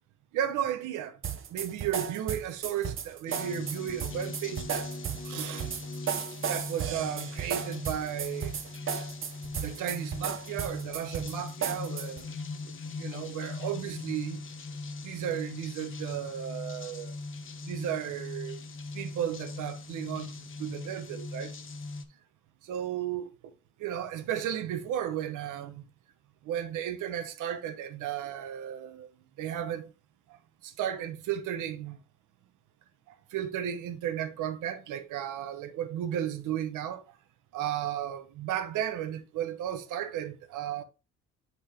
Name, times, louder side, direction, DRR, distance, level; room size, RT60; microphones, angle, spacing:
voice 1, 0.3-1.1 1.5-4.8 5.2-5.7 6.5-8.5 9.6-12.3 13.0-14.4 15.0-17.1 17.6-18.6 18.9-20.3 20.6-21.5 22.6-23.5 23.8-25.8 26.5-29.1 29.4-29.9 30.6-32.0 33.3-37.0 37.5-40.8, right 10 dB, 85° right, 0.9 m, -34 dB
sound 1, 1.2-12.3, right 8 dB, 45° right, 0.8 m, -35 dB
sound 2, 3.3-22.0, left 3 dB, 40° left, 1.0 m, -40 dB
6.8 x 5.5 x 2.8 m
cardioid pair, 90°, 30 cm